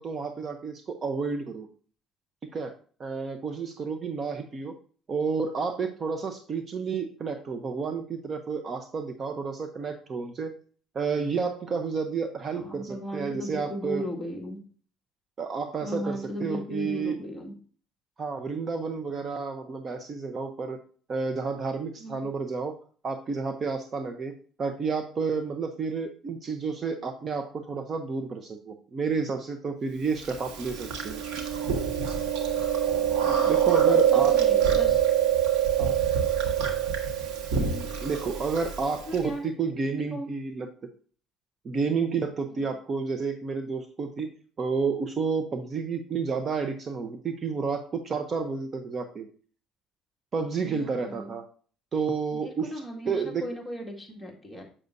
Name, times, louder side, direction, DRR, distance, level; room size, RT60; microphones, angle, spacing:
voice 1, 0.0-1.7 2.4-2.7 3.0-4.7 5.1-10.5 10.9-14.1 15.4-17.2 18.2-20.8 21.1-24.3 24.6-31.2 33.5-34.4 34.7-34.8 35.8-36.0 38.0-40.7 41.6-44.3 44.6-49.3 50.3-51.5 51.9-53.4, right 5 dB, 40° right, 7 dB, 0.7 m, -30 dB
voice 2, 12.5-14.7 15.8-17.5 22.0-22.3 32.0-32.2 33.2-35.1 37.6-37.8 39.1-39.5 40.1-40.3 42.5-42.7 50.6-51.3 52.4-54.6, equal, ahead, -2 dB, 2.0 m, -37 dB
Chewing mastication, 30.2-39.2, right 9 dB, 80° right, 1.6 m, -25 dB
7.3 x 6.6 x 2.6 m, 0.43 s
cardioid pair, 105°, 0 cm